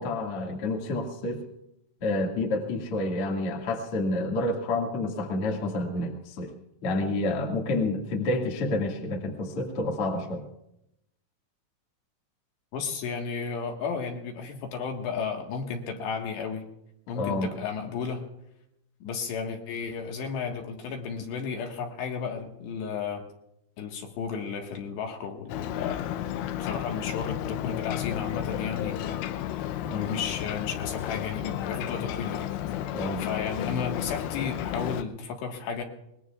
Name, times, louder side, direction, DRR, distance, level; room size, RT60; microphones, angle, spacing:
voice 1, 0.0-1.4 2.0-6.5 6.8-10.4 17.1-17.5 29.8-30.1 32.9-33.2, left 2 dB, 50° left, 1 dB, 1.7 m, -29 dB
voice 2, 12.7-16.6 17.1-18.2 19.0-23.2 23.8-29.2 30.1-32.5 33.2-35.8, left 6 dB, 65° left, 2 dB, 3.4 m, -33 dB
Ocean, 25.5-35.0, left 11 dB, 90° left, 2.4 m, -32 dB
24.5 x 20.5 x 2.4 m, 0.81 s
omnidirectional pair, 5.8 m